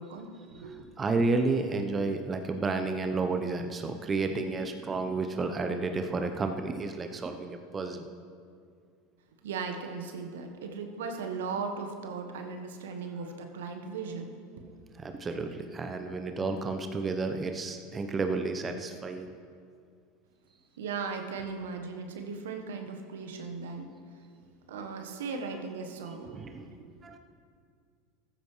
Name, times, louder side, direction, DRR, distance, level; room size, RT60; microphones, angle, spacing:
voice 1, 0.0-0.9 9.4-14.3 14.6-14.7 15.3-15.4 16.0-16.2 20.8-23.9 24.7-26.9, right 5 dB, 70° right, 4 dB, 1.3 m, -38 dB
voice 2, 1.0-8.0 15.0-19.3 26.3-26.7 27.0-27.2, right 3 dB, 25° right, 6 dB, 0.9 m, -31 dB
14.5 x 14.5 x 3.3 m, 2.2 s
figure-of-eight pair, 80°, 0 cm